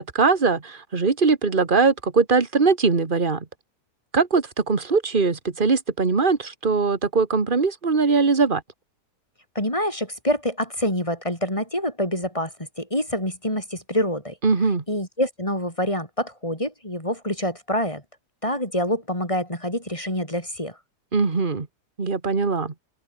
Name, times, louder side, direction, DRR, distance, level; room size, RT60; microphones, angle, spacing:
voice 1, 0.0-3.5 4.1-8.6 14.4-14.8 21.1-21.7 22.0-22.7, right 4 dB, 30° right, 2.0 m, -21 dB
voice 2, 9.5-14.4 14.9-18.0 18.4-20.8, left 1 dB, 20° left, 7.6 m, -26 dB
omnidirectional pair, 1.7 m